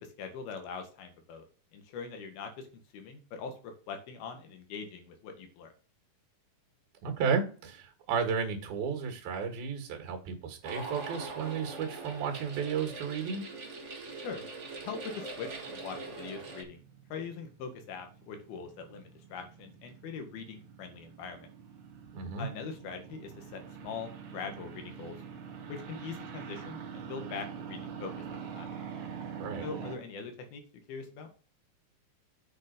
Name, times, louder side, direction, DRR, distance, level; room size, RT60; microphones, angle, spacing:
voice 1, 0.2-1.5 1.7-2.7 2.9-5.7 14.2-14.5 14.8-16.8 17.1-21.5 22.4-25.2 25.7-28.7 29.6-30.6 30.9-31.3, left 5 dB, 80° left, 6 dB, 3.5 m, -42 dB
voice 2, 7.0-13.5 22.1-22.5 29.4-29.7, right 6 dB, 80° right, 5 dB, 3.6 m, -33 dB
sound 1, 10.6-16.6, right 3 dB, 35° right, 1.1 m, -42 dB
sound 2, 15.4-30.0, right 7 dB, 65° right, 3.1 m, -45 dB
8.5 x 5.1 x 5.2 m, 0.40 s
omnidirectional pair, 4.3 m